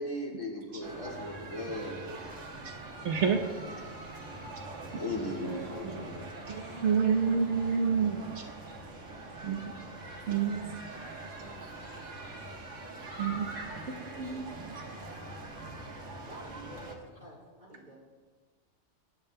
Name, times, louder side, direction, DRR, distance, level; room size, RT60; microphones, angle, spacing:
voice 1, 0.0-2.3 5.0-6.3 14.2-14.4, left 1 dB, 80° left, -2 dB, 2.3 m, -37 dB
sound 1, 0.8-17.0, right 2 dB, 85° right, 1.6 m, -43 dB
voice 2, 3.0-3.7 5.4-6.0 6.5-8.4 9.4-9.6 10.3-10.6 13.2-13.5 13.9-14.5, right 6 dB, 70° right, 3 dB, 1.1 m, -29 dB
voice 3, 16.2-18.0, right 1 dB, 45° right, -5 dB, 3.8 m, -49 dB
21.0 x 10.5 x 2.2 m, 1.4 s
omnidirectional pair, 1.3 m